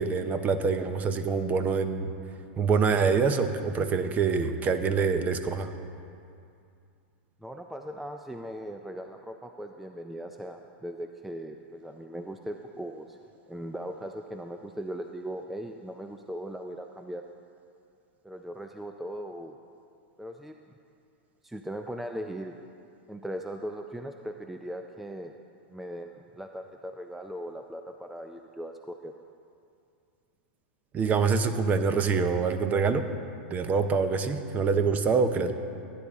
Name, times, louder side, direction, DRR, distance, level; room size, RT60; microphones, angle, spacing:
voice 1, 0.0-2.1 2.6-5.7 30.9-33.1 33.5-35.5, right 5 dB, 25° right, 9 dB, 0.8 m, -25 dB
voice 2, 7.4-13.2 13.5-17.2 18.2-19.6 20.2-20.6 21.4-22.6 23.1-25.3 25.7-29.1, right 1 dB, 5° right, 5 dB, 0.4 m, -39 dB
16.0 x 10.0 x 3.6 m, 2.5 s
hypercardioid pair, 115°, 6 cm